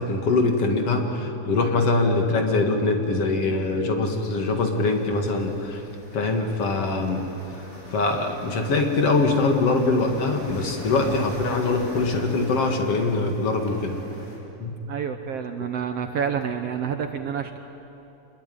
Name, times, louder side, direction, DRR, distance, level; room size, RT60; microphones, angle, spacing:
voice 1, 0.0-5.8 6.1-7.2 7.9-14.0 14.6-14.8, left 3 dB, 50° left, 3 dB, 2.8 m, -23 dB
sound 1, 4.0-14.4, equal, 25° left, 4.7 m, -41 dB
voice 2, 14.9-17.6, right 7 dB, 65° right, 7 dB, 1.7 m, -28 dB
25.5 x 21.5 x 9.4 m, 2.9 s
omnidirectional pair, 3.6 m